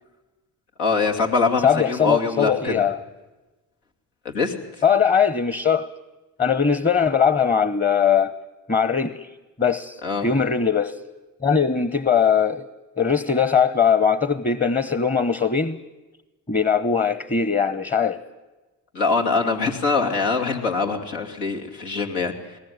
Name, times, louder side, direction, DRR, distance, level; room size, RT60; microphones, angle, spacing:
voice 1, 0.8-2.9 4.2-4.5 10.0-10.3 18.9-22.6, left 4 dB, 90° left, 2.7 m, -23 dB
voice 2, 1.6-3.0 4.8-5.9 6.4-8.3 8.7-9.3 9.6-11.0 11.4-12.6 13.0-15.8 16.5-18.2, left 6 dB, 20° left, 1.0 m, -20 dB
20.0 x 19.5 x 9.5 m
supercardioid pair, 55°, 39 cm